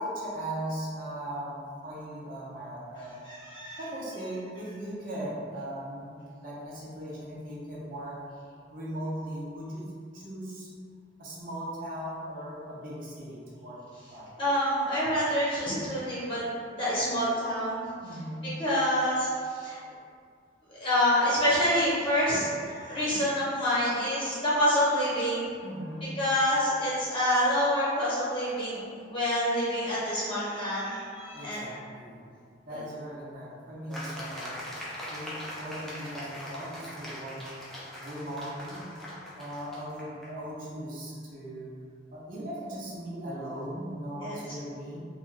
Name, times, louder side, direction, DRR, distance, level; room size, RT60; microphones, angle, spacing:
voice 1, 0.0-3.2 3.8-8.2 8.7-10.7 11.2-13.8 14.1-14.3 18.0-18.6 25.6-26.2 31.3-32.2 32.7-34.6 35.1-37.5 38.0-38.9 39.4-41.7 42.1-45.0, right 1 dB, 50° right, -6 dB, 0.7 m, -38 dB
voice 2, 3.2-3.8 14.4-16.5 16.8-17.8 18.6-19.8 20.8-25.5 26.2-28.8 29.1-31.7 44.2-44.4, equal, 30° left, -9 dB, 1.0 m, -27 dB
sound 1, 33.9-40.3, left 1 dB, ahead, 0.4 m, -41 dB
2.6 x 2.3 x 3.2 m, 2.2 s
head